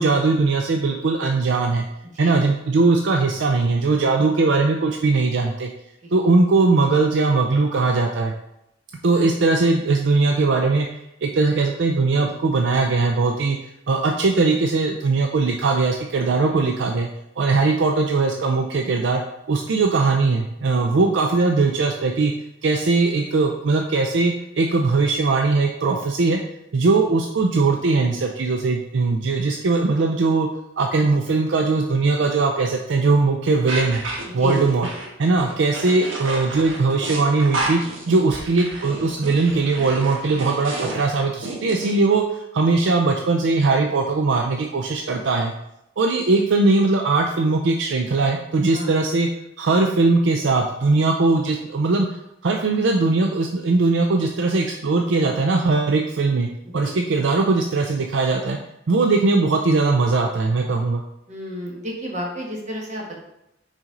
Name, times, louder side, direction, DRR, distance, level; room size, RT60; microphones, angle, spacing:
voice 1, 0.0-1.9 2.2-5.7 6.1-8.3 9.0-10.9 11.2-13.6 13.9-17.1 17.4-19.2 19.5-22.3 22.6-26.4 26.7-30.5 30.8-34.0 34.3-34.9 35.2-37.8 38.1-45.5 46.0-49.3 49.6-52.1 52.4-56.5 56.7-58.6 58.9-61.0, right 3 dB, 65° right, 3 dB, 0.5 m, -20 dB
sound 1, 33.7-41.9, right 2 dB, 85° right, 1.2 m, -31 dB
voice 2, 61.3-63.2, equal, 40° right, -1 dB, 1.4 m, -31 dB
5.9 x 4.2 x 3.8 m, 0.82 s
head